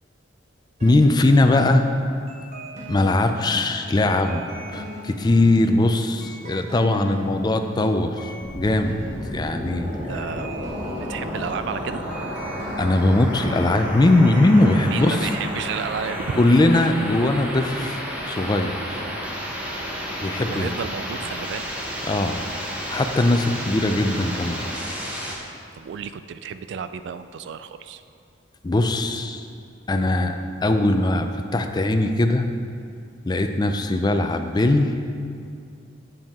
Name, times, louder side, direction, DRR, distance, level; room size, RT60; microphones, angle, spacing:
voice 1, 0.8-1.9 2.9-4.4 4.7-9.0 9.3-9.9 12.8-15.3 16.4-18.0 18.3-19.1 20.2-20.7 22.0-22.5 22.9-24.6 28.6-29.5 29.9-32.5 33.3-34.9, left 2 dB, 20° left, 6 dB, 0.4 m, -20 dB
sound 1, 0.8-16.5, left 1 dB, 40° right, 1.2 m, -38 dB
sound 2, 8.4-25.4, equal, 10° right, 0.9 m, -32 dB
voice 2, 10.1-10.5 10.9-12.0 14.9-16.4 20.5-21.7 25.7-28.0, right 7 dB, 65° right, 11 dB, 0.3 m, -32 dB
7.6 x 7.2 x 3.6 m, 2.4 s
head